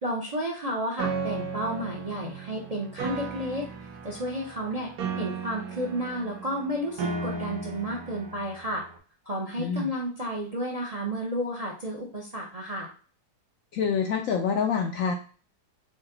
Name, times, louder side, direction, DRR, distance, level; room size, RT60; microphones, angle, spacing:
voice 1, 0.0-3.7 4.0-4.9 5.2-8.8 9.3-12.9, equal, 40° right, 0 dB, 0.5 m, -32 dB
Piano, 1.0-9.0, right 5 dB, 65° right, 1.1 m, -36 dB
voice 2, 9.6-9.9 13.7-15.1, left 6 dB, 70° left, 3 dB, 0.8 m, -26 dB
4.9 x 2.2 x 3.8 m, 0.38 s
omnidirectional pair, 1.8 m